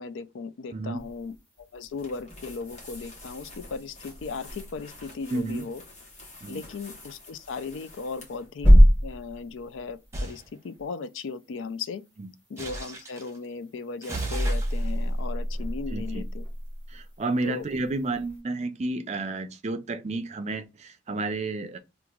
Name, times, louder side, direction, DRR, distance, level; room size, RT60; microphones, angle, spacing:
voice 1, 0.0-5.8 6.5-8.7 9.0-12.0 12.5-16.4 17.4-17.6, left 4 dB, 80° left, 0.4 m, -37 dB
sound 1, 0.9-18.4, equal, 10° left, 1.1 m, -28 dB
sound 2, 1.9-8.5, left 2 dB, 35° left, 1.0 m, -48 dB
voice 2, 5.3-5.7 6.4-6.6 12.2-12.3 15.9-16.2 16.9-21.8, right 2 dB, 35° right, 0.4 m, -31 dB
sound 3, 10.1-10.4 12.6-13.3 14.0-16.6, equal, 15° right, 0.9 m, -30 dB
2.9 x 2.4 x 3.6 m
head